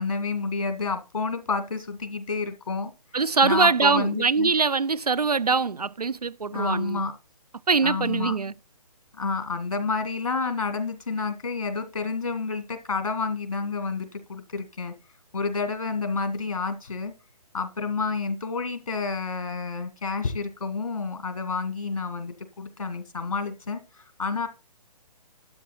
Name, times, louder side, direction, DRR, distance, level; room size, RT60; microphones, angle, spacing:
voice 1, 0.0-2.9 3.4-4.5 6.5-7.1 7.8-8.3 9.1-14.9 15.3-17.1 17.5-24.5, left 4 dB, 65° left, 2.2 m, -29 dB
voice 2, 3.1-7.0 7.7-8.5, right 4 dB, 80° right, 0.6 m, -23 dB
12.5 x 9.0 x 4.2 m
figure-of-eight pair, 135°, 20 cm